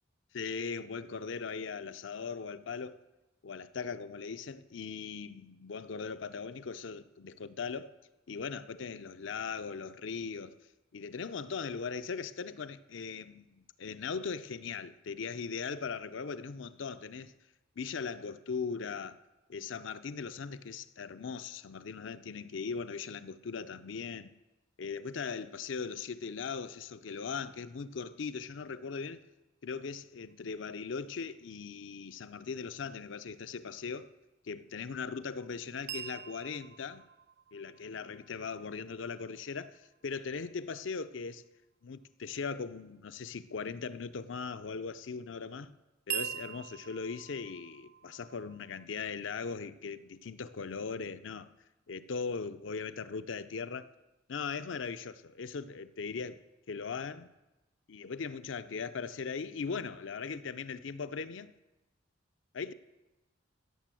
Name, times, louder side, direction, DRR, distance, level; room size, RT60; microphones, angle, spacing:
voice 1, 0.3-3.0 3.4-7.9 8.3-10.6 10.9-17.3 17.8-19.2 19.5-24.3 24.8-29.2 29.6-34.1 34.4-37.1 37.5-41.4 41.8-45.7 46.1-51.5 51.9-53.9 54.3-56.4 56.7-57.3 57.9-61.5 62.5-62.7, left 5 dB, 65° left, 0.5 m, -39 dB
sound 1, 35.9-39.9 46.1-48.8, right 10 dB, 55° right, 0.6 m, -43 dB
15.0 x 6.9 x 7.5 m
head